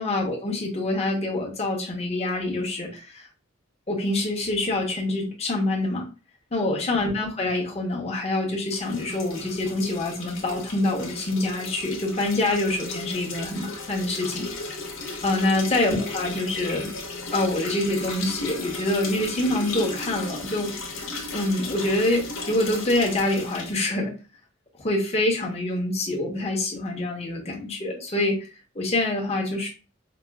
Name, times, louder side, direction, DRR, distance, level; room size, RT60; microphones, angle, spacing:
voice 1, 0.0-3.3 3.9-6.0 6.5-14.5 15.2-16.9 17.3-20.7 21.3-24.1 24.8-28.4 28.7-29.7, left 2 dB, 30° left, -2 dB, 1.0 m, -26 dB
sound 1, 8.7-23.8, left 3 dB, 85° left, 1.2 m, -35 dB
5.0 x 2.4 x 2.3 m, 0.33 s
head